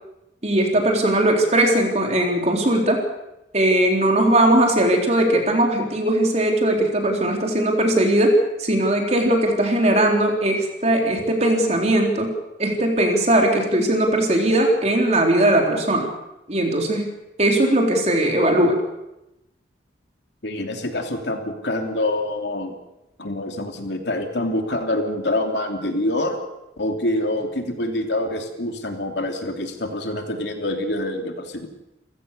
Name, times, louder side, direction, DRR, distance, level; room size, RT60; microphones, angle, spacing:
voice 1, 0.4-3.0 3.5-12.3 12.6-16.1 16.5-18.7, right 1 dB, 35° right, 1 dB, 4.0 m, -19 dB
voice 2, 20.4-22.7 23.2-26.4 26.8-31.7, left 1 dB, 70° left, 4 dB, 3.1 m, -26 dB
29.5 x 15.5 x 6.9 m, 0.92 s
head